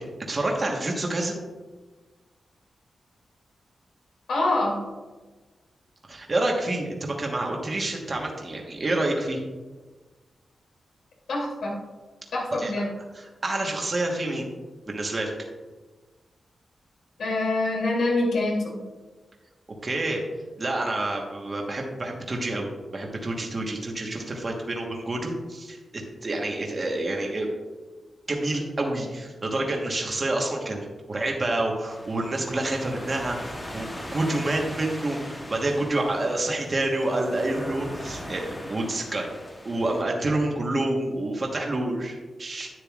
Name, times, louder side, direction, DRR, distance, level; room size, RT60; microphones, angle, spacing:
voice 1, 0.3-1.4 6.1-9.4 12.6-12.7 13.1-14.5 14.9-15.3 19.8-20.2 20.6-25.8 26.2-27.5 28.3-39.3 39.6-42.7, right 2 dB, 25° right, 0 dB, 1.2 m, -28 dB
voice 2, 4.3-4.8 11.3-11.8 12.3-12.9 17.2-18.8, left 2 dB, 85° left, -3 dB, 2.8 m, -25 dB
sound 1, 31.9-40.0, left 1 dB, 15° left, 0.9 m, -40 dB
10.5 x 9.3 x 2.4 m, 1.3 s
wide cardioid pair, 180°, 0 cm